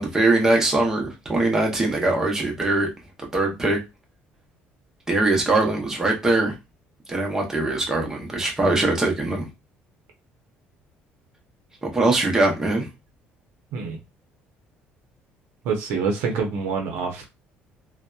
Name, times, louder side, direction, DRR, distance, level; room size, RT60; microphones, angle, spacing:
voice 1, 0.0-2.9 3.2-3.8 5.1-6.6 7.1-9.5 11.8-12.9, right 2 dB, 15° right, 0.7 m, -22 dB
voice 2, 15.6-17.3, right 5 dB, 75° right, 0.6 m, -26 dB
2.7 x 2.1 x 2.2 m
cardioid pair, 155°, 4 cm